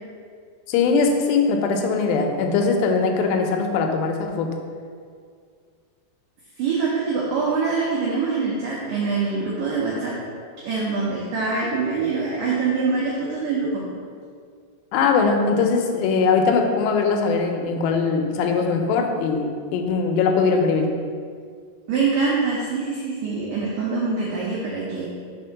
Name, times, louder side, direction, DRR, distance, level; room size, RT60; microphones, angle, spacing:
voice 1, 0.7-4.6 14.9-20.9, left 4 dB, 85° left, 4 dB, 2.8 m, -21 dB
voice 2, 6.6-10.1 10.6-13.8 21.9-25.1, right 4 dB, 85° right, -5 dB, 1.8 m, -24 dB
5.4 x 4.3 x 5.7 m, 2.1 s
omnidirectional pair, 4.9 m